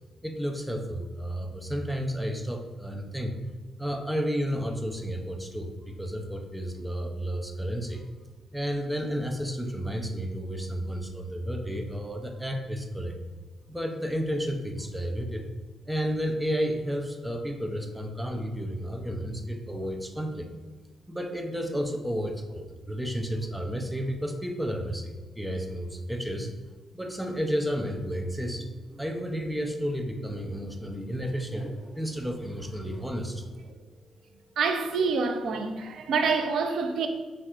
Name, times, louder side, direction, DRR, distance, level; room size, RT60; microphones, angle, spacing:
voice 1, 0.2-3.4 3.8-8.0 8.5-13.2 13.7-15.5 15.9-20.5 21.1-26.5 26.9-33.5, equal, 5° right, 0.5 m, -32 dB
voice 2, 34.6-37.1, right 4 dB, 65° right, 0.5 m, -26 dB
5.9 x 3.2 x 2.5 m
cardioid pair, 135°, 0 cm